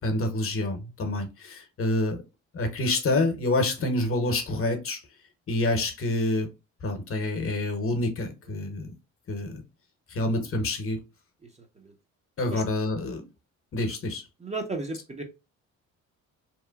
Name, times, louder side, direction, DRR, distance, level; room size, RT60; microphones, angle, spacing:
voice 1, 0.0-2.2 2.5-5.0 5.5-6.5 6.8-8.9 9.3-9.6 10.1-11.0 12.4-13.3 13.7-14.2, left 2 dB, 45° left, 0.9 m, -27 dB
voice 2, 11.4-11.9 12.5-12.6 14.4-15.2, right 3 dB, 20° right, 0.7 m, -35 dB
2.9 x 2.1 x 2.2 m
supercardioid pair, 75°, 32 cm